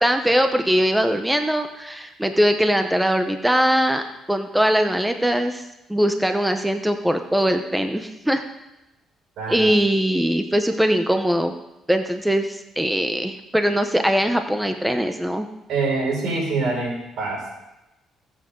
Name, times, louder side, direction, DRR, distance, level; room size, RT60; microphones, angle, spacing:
voice 1, 0.0-4.0 4.3-5.6 5.9-8.4 9.5-11.5 11.9-15.5, equal, 5° right, 6 dB, 0.9 m, -21 dB
voice 2, 9.4-9.7 15.7-17.5, right 3 dB, 75° right, 0 dB, 5.6 m, -25 dB
19.5 x 8.0 x 3.8 m, 0.94 s
cardioid pair, 90°, 0 cm